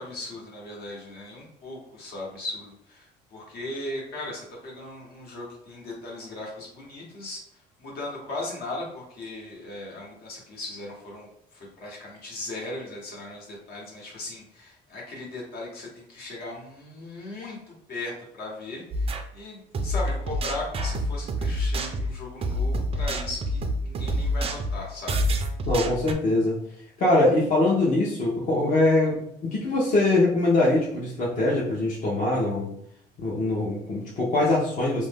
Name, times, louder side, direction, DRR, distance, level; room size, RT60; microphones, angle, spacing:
voice 1, 0.0-7.4 7.8-25.2, left 2 dB, 70° left, -3 dB, 1.2 m, -38 dB
sound 1, 18.9-19.2 19.7-26.1, equal, 35° right, 0.4 m, -27 dB
voice 2, 25.7-26.6 27.0-32.7 33.2-35.1, left 2 dB, 50° left, -5 dB, 0.7 m, -23 dB
2.5 x 2.1 x 3.4 m, 0.70 s
cardioid pair, 110°, 17 cm